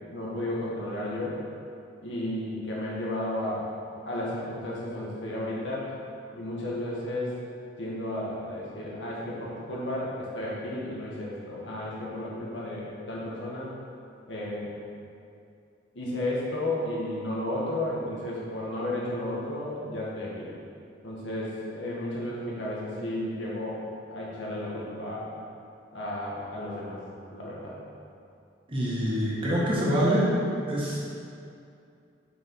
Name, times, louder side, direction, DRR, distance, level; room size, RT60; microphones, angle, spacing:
voice 1, 0.0-1.4 2.0-3.7 4.1-5.9 6.3-7.4 7.8-13.7 14.3-14.7 15.9-20.5 21.0-23.8 24.1-25.3 25.9-27.0 27.3-27.8, left 1 dB, 85° left, -5 dB, 1.9 m, -33 dB
voice 2, 28.7-30.4 30.7-31.0, equal, 30° right, -6 dB, 1.7 m, -25 dB
6.8 x 6.3 x 4.8 m, 2.5 s
head